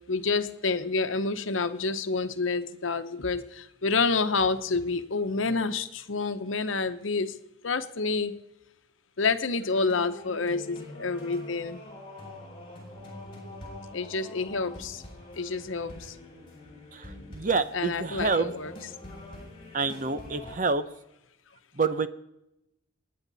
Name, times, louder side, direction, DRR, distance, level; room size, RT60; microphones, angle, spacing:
voice 1, 0.0-7.4 7.6-8.4 9.2-11.8 13.9-15.0 15.3-16.2 17.7-18.7 19.0-19.2, left 4 dB, 85° left, 10 dB, 1.0 m, -28 dB
sound 1, 9.5-20.6, left 1 dB, 25° left, 6.2 m, -45 dB
voice 2, 16.9-18.5 19.7-20.8 21.7-22.1, right 4 dB, 40° right, 12 dB, 0.7 m, -27 dB
28.5 x 9.6 x 4.1 m, 0.88 s
head